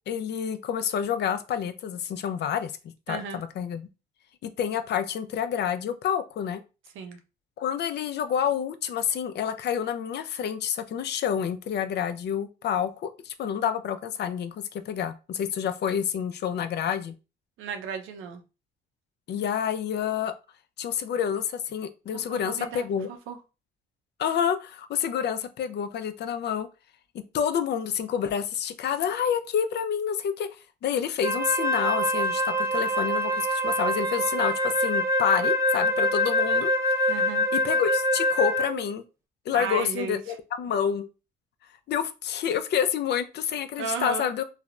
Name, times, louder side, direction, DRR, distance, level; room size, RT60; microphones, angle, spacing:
voice 1, 0.1-2.7 3.1-3.9 4.4-6.6 7.6-17.1 19.3-20.3 20.8-23.1 24.2-26.7 27.3-30.5 30.8-36.7 37.5-39.1 39.5-41.1 41.9-44.4, left 8 dB, 60° left, 11 dB, 0.4 m, -28 dB
voice 2, 3.1-3.4 6.9-7.2 17.6-18.4 22.1-23.4 37.1-37.5 39.5-40.2 43.8-44.3, right 6 dB, 85° right, 6 dB, 0.6 m, -34 dB
Wind instrument woodwind instrument, 31.2-38.8, left 1 dB, 15° right, 0.5 m, -25 dB
3.2 x 2.0 x 2.4 m, 0.30 s
cardioid pair, 90°, 20 cm